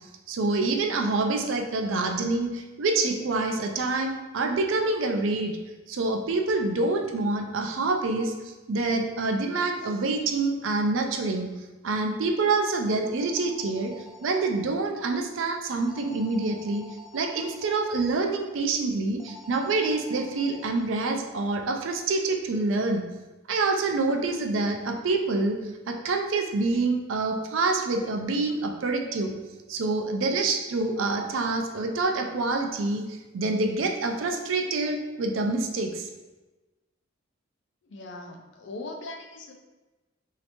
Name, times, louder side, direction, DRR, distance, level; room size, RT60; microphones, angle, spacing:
voice 1, 0.3-5.6 5.9-11.5 11.8-13.9 14.2-16.8 17.1-23.0 23.5-25.6 25.9-29.3 29.7-36.1, right 3 dB, 80° right, 4 dB, 0.4 m, -26 dB
sound 1, 12.6-14.5 15.8-17.8 19.2-21.2, left 2 dB, 5° right, 0.3 m, -49 dB
voice 2, 37.8-39.5, left 2 dB, 65° left, 3 dB, 0.4 m, -40 dB
3.2 x 2.8 x 2.8 m, 1.2 s
head